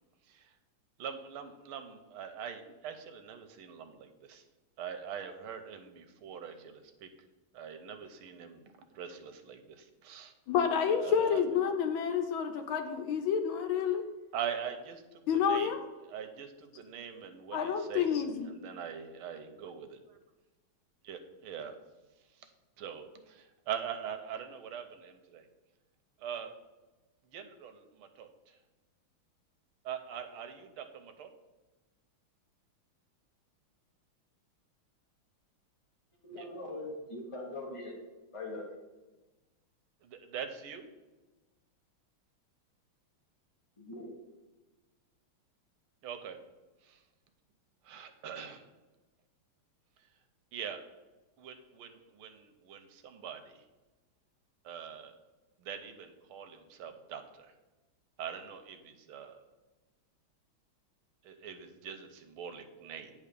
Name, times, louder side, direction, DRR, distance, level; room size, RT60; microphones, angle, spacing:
voice 1, 1.0-4.4 4.8-7.1 7.5-8.6 8.9-9.6 10.0-10.3 10.9-11.4 14.3-15.0 15.3-15.7 16.0-18.2 18.5-20.0 21.0-21.7 22.8-25.4 26.2-26.5 27.3-27.8 28.2-28.3 29.8-31.3 36.4-36.5 40.1-40.8 46.0-46.4 47.9-48.6 50.5-50.8 51.4-51.9 52.2-53.4 54.6-55.1 55.6-57.5 58.2-59.4 61.2-63.1, right 8 dB, 90° right, 7 dB, 1.6 m, -42 dB
voice 2, 10.5-14.1 15.3-15.8 17.5-18.5, left 7 dB, 75° left, 7 dB, 1.6 m, -29 dB
voice 3, 36.2-38.0 38.3-38.7 43.8-44.2, left 2 dB, 30° left, -2 dB, 0.5 m, -41 dB
9.3 x 3.4 x 6.7 m, 1.2 s
omnidirectional pair, 2.3 m